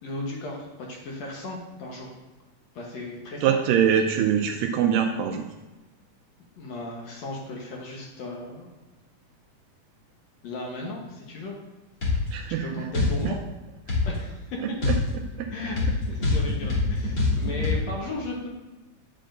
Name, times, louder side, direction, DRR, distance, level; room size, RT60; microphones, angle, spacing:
voice 1, 0.0-2.1 2.8-3.6 6.6-8.7 10.4-11.6 12.6-13.4 14.1-14.7 15.5-18.5, left 2 dB, 65° left, -1 dB, 1.9 m, -36 dB
voice 2, 3.4-5.5 12.3-12.7 13.0-13.3 14.9-15.0 15.4-15.5, right 8 dB, 80° right, 3 dB, 2.1 m, -23 dB
sound 1, 12.0-12.2 12.9-13.2 13.9-14.1 14.8-17.8, left 3 dB, 40° left, 2.5 m, -24 dB
8.6 x 8.6 x 2.6 m, 1.1 s
omnidirectional pair, 3.9 m